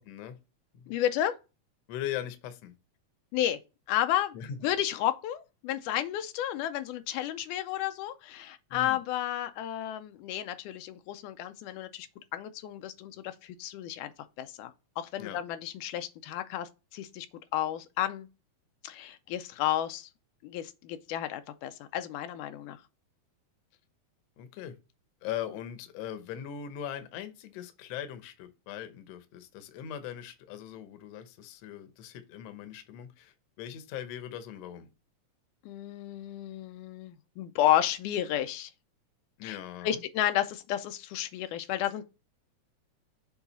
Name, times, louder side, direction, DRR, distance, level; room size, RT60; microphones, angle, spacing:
voice 1, 0.1-0.4 0.7-0.9 1.9-2.7 4.3-4.6 8.7-9.0 15.2-15.4 24.4-24.8 25.2-34.9 39.4-40.0, left 10 dB, 70° left, 1.8 m, -40 dB
voice 2, 0.9-1.4 3.3-3.6 3.9-4.4 4.6-12.1 12.3-14.1 14.4-14.7 15.0-17.3 17.5-18.3 18.8-20.1 20.4-22.8 35.7-38.7 39.4-42.0, left 12 dB, 85° left, 2.1 m, -32 dB
7.2 x 3.8 x 4.0 m
omnidirectional pair, 3.5 m